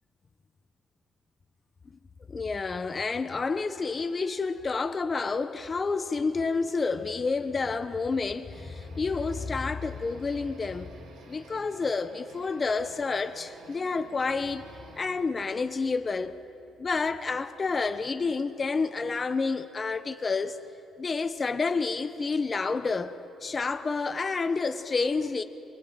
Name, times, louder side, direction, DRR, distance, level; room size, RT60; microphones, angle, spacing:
voice 1, 2.3-10.9 11.3-14.6 15.0-16.4 16.8-20.6 21.0-23.1 23.4-25.4, left 4 dB, 35° left, 1.1 m, -29 dB
sound 1, 8.5-15.1, right 1 dB, 85° right, 4.6 m, -50 dB
24.5 x 23.5 x 9.3 m
cardioid pair, 90°, 0 cm